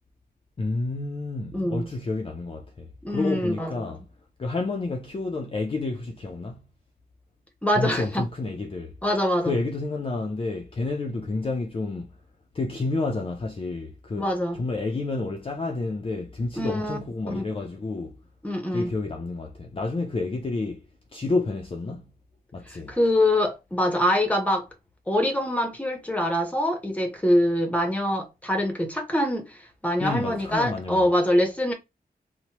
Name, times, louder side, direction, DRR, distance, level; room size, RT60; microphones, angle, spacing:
voice 1, 0.6-4.0 4.4-6.6 7.7-8.9 9.4-12.1 12.5-14.3 14.5-18.2 18.7-22.1 22.5-23.0 30.0-31.0, left 3 dB, 35° left, 0.4 m, -30 dB
voice 2, 1.5-1.9 3.0-3.9 7.6-8.2 9.0-9.5 14.2-14.6 16.6-17.5 18.4-18.9 22.7-24.7 25.1-31.7, left 1 dB, 10° left, 0.7 m, -24 dB
2.9 x 2.1 x 2.8 m
wide cardioid pair, 110°, 16 cm